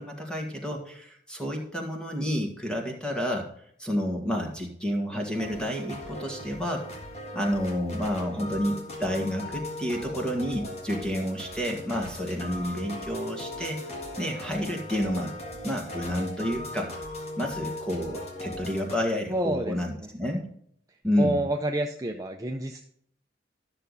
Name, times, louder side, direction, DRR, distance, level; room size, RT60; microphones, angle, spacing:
voice 1, 0.0-3.5 3.8-6.8 7.3-13.8 14.2-15.3 15.6-16.9 17.4-20.5 21.0-21.4, equal, 5° left, 1 dB, 1.8 m, -30 dB
sound 1, 5.3-19.0, left 1 dB, 35° left, 1.7 m, -38 dB
voice 2, 19.3-19.8 20.0-20.1 21.2-22.8, right 1 dB, 20° right, 3 dB, 0.5 m, -28 dB
12.5 x 6.7 x 4.0 m, 0.66 s
head